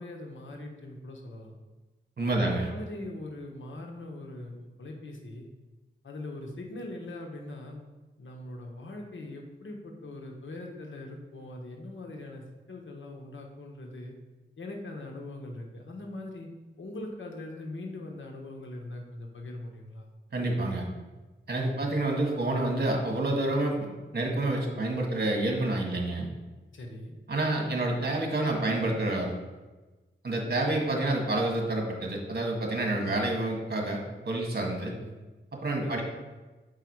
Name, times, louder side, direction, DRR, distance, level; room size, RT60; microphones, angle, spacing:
voice 1, 0.0-1.5 2.2-5.5 6.0-7.8 8.2-14.2 14.6-16.5 16.8-20.1 21.7-22.0 26.7-27.1 30.6-30.8 34.8-35.2 35.8-36.0, left 2 dB, 75° left, 1 dB, 1.2 m, -41 dB
voice 2, 2.2-2.7 20.3-20.9 21.5-23.9 24.1-26.3 27.3-29.3 30.2-34.0 34.2-34.9 35.6-36.0, right 2 dB, 55° right, 1 dB, 1.6 m, -28 dB
6.8 x 4.8 x 4.7 m, 1.2 s
wide cardioid pair, 65°, 20 cm